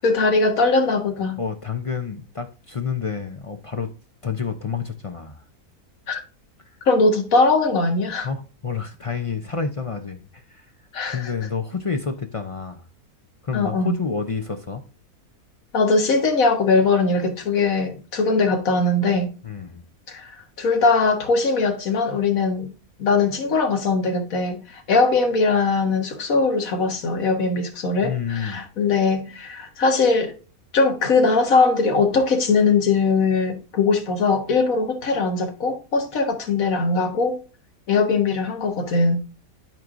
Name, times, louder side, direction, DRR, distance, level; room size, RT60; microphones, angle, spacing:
voice 1, 0.0-1.4 6.1-6.2 6.9-8.3 10.9-11.3 13.5-13.9 15.7-19.3 20.1-22.7 23.0-30.3 30.7-37.4 37.9-39.2, left 3 dB, 65° left, 1.8 m, -20 dB
voice 2, 1.4-3.9 4.2-5.4 8.2-10.7 11.1-12.8 13.4-14.8 19.4-19.8 28.0-28.6, left 6 dB, 50° left, 0.4 m, -29 dB
12.0 x 4.6 x 2.5 m
omnidirectional pair, 1.6 m